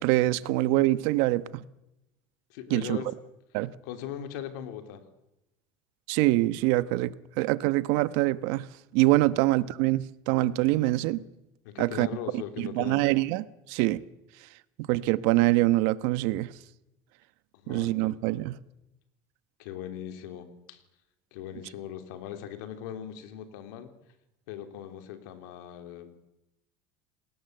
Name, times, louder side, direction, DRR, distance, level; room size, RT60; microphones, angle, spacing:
voice 1, 0.0-1.6 2.7-3.0 3.5-3.7 6.1-8.7 8.9-11.2 11.8-12.1 12.3-14.0 14.8-16.5 17.7-18.6, right 18 dB, 75° right, 1.1 m, -25 dB
voice 2, 2.5-3.1 3.8-5.0 9.2-9.4 11.6-13.0 17.5-18.1 19.6-20.8 21.3-23.9 24.5-26.1, left 10 dB, 90° left, 3.4 m, -39 dB
29.0 x 19.5 x 8.0 m
supercardioid pair, 125°, 10 cm